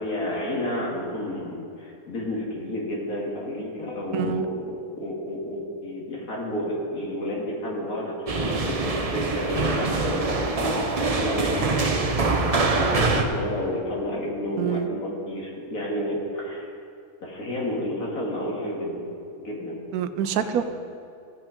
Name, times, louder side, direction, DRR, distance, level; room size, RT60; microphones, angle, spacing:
voice 1, 0.0-12.3 12.7-16.7 17.2-19.1 19.4-19.8 20.3-20.6, left 1 dB, 70° left, -3 dB, 2.3 m, -31 dB
voice 2, 4.1-4.5 14.6-14.9 19.9-20.6, right 9 dB, 85° right, 10 dB, 1.1 m, -26 dB
sound 1, 8.3-13.2, right 3 dB, 35° right, 0.6 m, -24 dB
15.5 x 5.9 x 5.1 m, 2.6 s
omnidirectional pair, 1.5 m